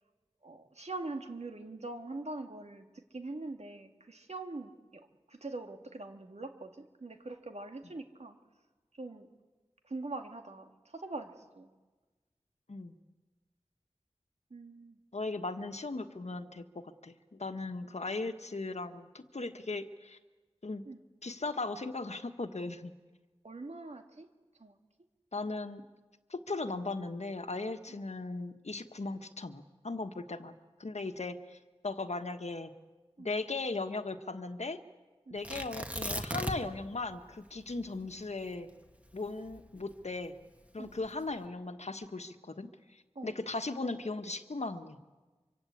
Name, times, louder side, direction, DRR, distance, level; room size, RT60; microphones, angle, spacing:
voice 1, 0.4-8.4 8.9-9.3 9.8-11.7 14.5-15.0 17.8-18.0 20.9-21.0 23.4-24.3 24.6-24.8 27.9-28.0 30.3-30.4 33.2-33.3 35.3-35.4 37.8-37.9 40.8-41.0 43.2-43.4, right 2 dB, 75° right, 5 dB, 2.1 m, -43 dB
voice 2, 15.1-20.2 20.6-20.8 21.2-22.9 25.3-25.8 26.3-30.5 30.8-31.6 31.8-32.7 33.2-34.8 35.3-38.7 39.1-40.3 40.7-45.0, left 3 dB, 80° left, 8 dB, 1.4 m, -38 dB
Tearing, 35.4-36.8 37.1-37.2 37.8-40.1 40.8-41.3, equal, 10° right, 1.9 m, -37 dB
25.0 x 24.5 x 8.5 m, 1.3 s
wide cardioid pair, 40°, 11 cm